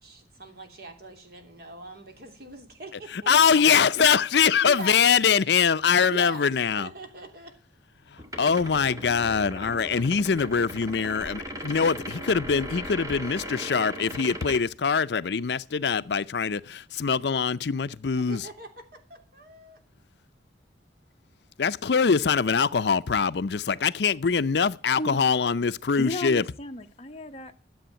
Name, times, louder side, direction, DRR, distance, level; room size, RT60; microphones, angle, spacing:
voice 1, 0.0-3.6 4.6-4.9 6.1-6.5 6.8-7.5 18.1-19.8, right 2 dB, 60° right, 3.0 m, -41 dB
voice 2, 3.1-6.9 8.1-18.5 21.6-26.5, left 6 dB, 70° left, 0.5 m, -23 dB
sound 1, 8.2-14.6, equal, 20° right, 2.1 m, -38 dB
voice 3, 26.0-27.6, left 1 dB, 35° left, 1.1 m, -34 dB
13.0 x 7.8 x 9.0 m
head